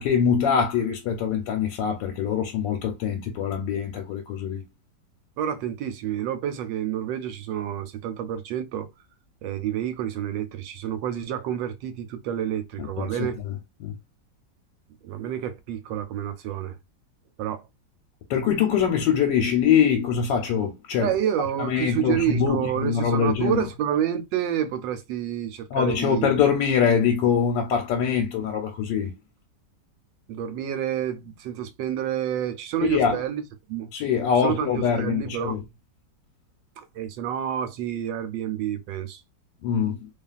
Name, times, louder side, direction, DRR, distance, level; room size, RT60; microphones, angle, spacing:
voice 1, 0.0-4.6 12.8-13.5 13.8-13.9 18.3-21.1 21.6-23.6 25.7-29.1 32.9-33.2 33.9-35.6 39.6-40.1, left 7 dB, 90° left, 1.3 m, -23 dB
voice 2, 5.4-8.9 9.4-13.4 15.0-16.8 17.4-17.6 21.0-26.3 30.3-33.4 33.7-33.9 34.4-35.6 36.8-39.2, right 10 dB, 90° right, 1.3 m, -29 dB
2.8 x 2.4 x 2.3 m
omnidirectional pair, 1.9 m